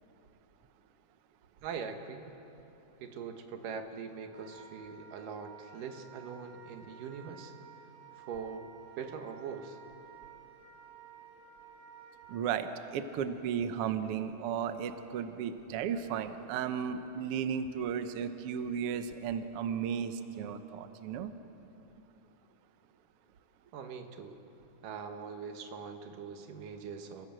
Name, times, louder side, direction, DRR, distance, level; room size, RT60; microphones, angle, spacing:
voice 1, 1.6-2.3 3.0-7.5 8.2-8.7 9.0-9.8 23.7-24.4 24.8-27.3, right 6 dB, 85° right, 6 dB, 3.0 m, -42 dB
Wind instrument woodwind instrument, 4.3-12.7, right 7 dB, 45° right, 6.0 m, -54 dB
voice 2, 12.3-21.3, right 7 dB, 65° right, 9 dB, 1.5 m, -34 dB
29.0 x 16.5 x 7.6 m, 3.0 s
omnidirectional pair, 3.7 m